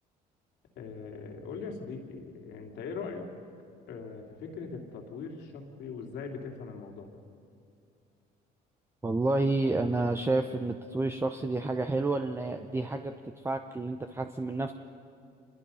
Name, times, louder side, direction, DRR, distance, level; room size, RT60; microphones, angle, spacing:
voice 1, 0.7-3.3 3.9-7.2, left 5 dB, 80° left, 2 dB, 3.0 m, -40 dB
voice 2, 9.0-13.1 13.4-14.7, right 2 dB, 15° right, 7 dB, 0.8 m, -29 dB
27.0 x 21.5 x 5.7 m, 2.4 s
cardioid pair, 110°, 17 cm